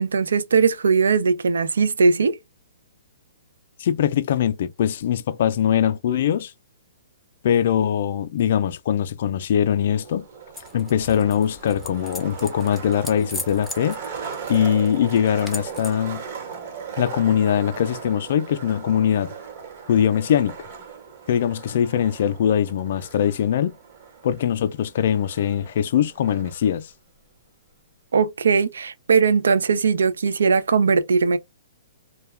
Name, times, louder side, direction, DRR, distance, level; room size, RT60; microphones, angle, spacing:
voice 1, 0.0-2.4 28.1-31.4, right 5 dB, 90° right, 0.4 m, -19 dB
voice 2, 3.8-6.5 7.4-10.3 10.7-14.0 14.5-16.2 17.0-19.3 19.9-20.6 21.3-23.7 24.2-26.9, left 9 dB, 55° left, 0.3 m, -22 dB
Skateboard, 9.7-26.7, right 6 dB, 45° right, 1.1 m, -38 dB
sound 1, 10.5-16.1, left 2 dB, 5° left, 0.5 m, -39 dB
2.2 x 2.2 x 3.2 m
hypercardioid pair, 150°, 0 cm